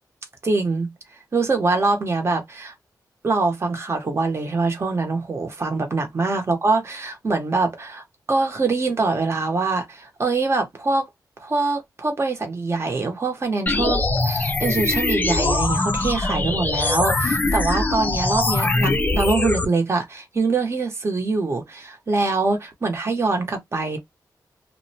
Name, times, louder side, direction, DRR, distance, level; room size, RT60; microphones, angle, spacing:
voice 1, 0.4-0.9 1.3-2.7 3.2-11.1 11.4-24.0, right 3 dB, 35° right, 0.8 m, -24 dB
sound 1, 13.7-19.7, left 2 dB, 25° left, 0.4 m, -22 dB
2.6 x 2.0 x 2.6 m
wide cardioid pair, 120°, 7 cm